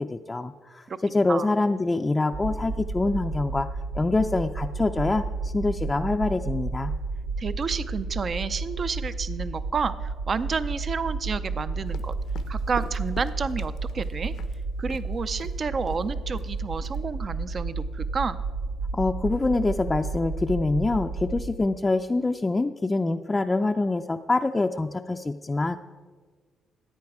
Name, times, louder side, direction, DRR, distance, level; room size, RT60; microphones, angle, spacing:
voice 1, 0.0-3.7 3.9-6.9 18.9-25.8, left 2 dB, 20° left, 5 dB, 0.4 m, -25 dB
sound 1, 2.3-21.6, right 3 dB, 80° right, 1.8 m, -32 dB
voice 2, 7.4-12.1 12.5-14.3 14.8-18.4, right 5 dB, 45° right, 13 dB, 0.5 m, -30 dB
sound 2, 11.9-14.6 14.9-15.1 15.4-15.6 15.9-16.1 16.3-17.0, left 8 dB, 75° left, 0.7 m, -44 dB
15.5 x 8.6 x 4.7 m, 1.6 s
cardioid pair, 90°, 0 cm